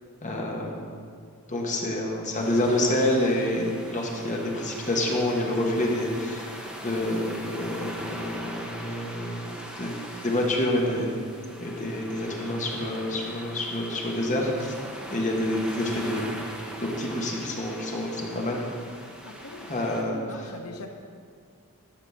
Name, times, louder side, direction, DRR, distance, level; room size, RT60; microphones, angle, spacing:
voice 1, 0.2-0.9 1.5-6.5 6.8-9.9 10.2-11.2 11.6-14.7 15.1-16.4 16.8-18.6 19.7-20.5, left 1 dB, 35° left, -1 dB, 1.4 m, -28 dB
sound 1, 2.3-20.0, equal, 5° right, 1.0 m, -41 dB
voice 2, 19.2-20.9, left 2 dB, 90° left, 4 dB, 0.9 m, -42 dB
11.5 x 4.0 x 7.0 m, 2.2 s
head